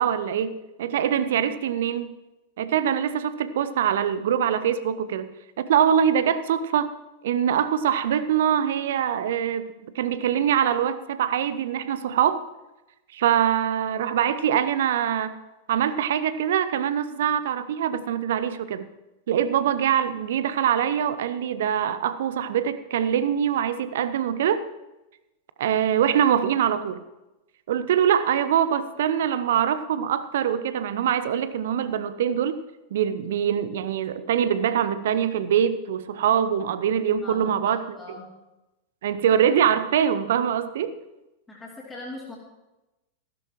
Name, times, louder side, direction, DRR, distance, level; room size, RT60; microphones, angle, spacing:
voice 1, 0.0-2.2 2.6-6.9 7.2-9.7 9.9-12.4 13.1-15.3 15.7-18.9 19.3-24.6 25.6-27.0 27.7-32.6 32.9-37.8 39.0-41.0, right 9 dB, 60° right, 13 dB, 0.7 m, -23 dB
voice 2, 37.2-38.3 41.5-42.4, left 2 dB, 10° left, -7 dB, 3.0 m, -40 dB
15.0 x 13.0 x 3.1 m, 1.0 s
figure-of-eight pair, 90°, 0 cm